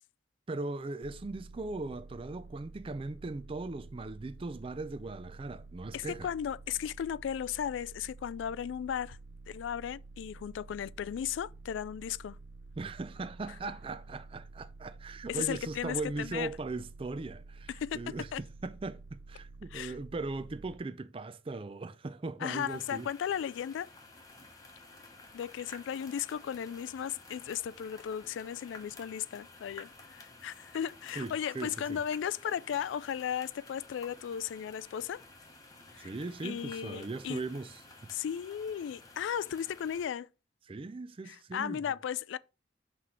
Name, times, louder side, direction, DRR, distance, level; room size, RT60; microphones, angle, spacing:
voice 1, 0.5-6.3 12.8-19.0 19.3-23.1 31.1-32.0 36.0-38.1 40.7-41.9, right 3 dB, 30° right, 0.4 m, -39 dB
sound 1, 1.0-20.8, right 3 dB, 70° right, 0.6 m, -50 dB
voice 2, 5.9-9.2 9.5-12.4 15.3-16.5 17.7-18.0 18.3-18.4 19.7-19.9 22.4-23.9 25.3-35.2 35.9-36.1 36.4-37.4 38.1-40.3 41.3-42.4, left 9 dB, 85° left, 0.3 m, -36 dB
sound 2, 22.5-40.1, left 2 dB, 20° left, 1.0 m, -53 dB
5.9 x 3.1 x 5.7 m
head